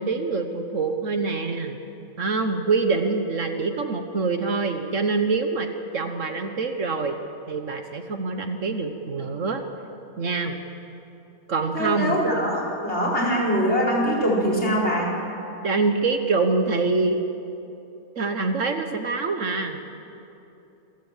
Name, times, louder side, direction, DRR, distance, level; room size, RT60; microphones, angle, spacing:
voice 1, 0.0-1.8 2.2-5.7 5.9-7.2 7.5-9.6 10.2-10.6 11.5-12.2 15.6-17.2 18.1-19.8, right 4 dB, 55° right, 6 dB, 1.4 m, -25 dB
voice 2, 11.7-15.1, equal, 45° left, -3 dB, 5.0 m, -23 dB
27.0 x 15.5 x 7.4 m, 2.8 s
omnidirectional pair, 1.6 m